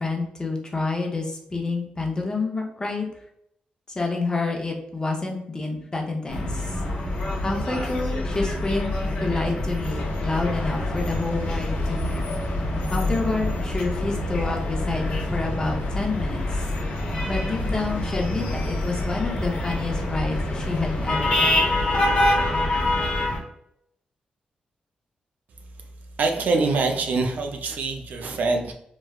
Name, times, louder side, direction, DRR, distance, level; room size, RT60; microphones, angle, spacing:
voice 1, 0.0-3.1 3.9-6.7 7.4-8.9 9.2-12.3 12.9-16.6 17.3-21.6, left 3 dB, 25° left, 1 dB, 0.6 m, -28 dB
sound 1, 6.3-23.4, left 1 dB, 50° left, 0.9 m, -26 dB
sound 2, 9.8-22.6, left 2 dB, 80° left, 0.4 m, -36 dB
voice 2, 26.2-28.7, right 3 dB, 75° right, 3 dB, 0.4 m, -24 dB
3.0 x 2.1 x 2.3 m, 0.74 s
cardioid pair, 90°, 3 cm